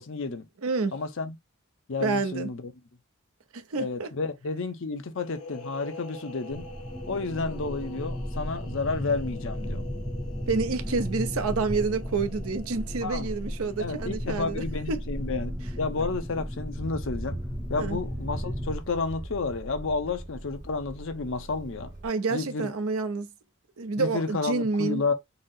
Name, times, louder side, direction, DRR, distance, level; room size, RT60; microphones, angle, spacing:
voice 1, 0.0-0.5 0.9-1.3 1.9-2.7 3.8-6.7 7.1-9.8 13.0-13.3 13.8-17.4 17.7-21.9 22.3-22.7 24.0-25.1, left 4 dB, 60° left, 0.6 m, -31 dB
voice 2, 0.6-1.0 2.0-2.5 3.5-4.1 10.5-15.0 17.8-18.0 22.0-23.3 23.8-25.0, right 4 dB, 70° right, 0.6 m, -28 dB
sound 1, 5.1-14.6, left 4 dB, 80° left, 1.0 m, -46 dB
sound 2, 6.5-18.7, equal, 5° right, 0.5 m, -35 dB
Motor vehicle (road), 16.7-22.1, right 1 dB, 35° right, 0.9 m, -40 dB
4.0 x 2.0 x 3.8 m
head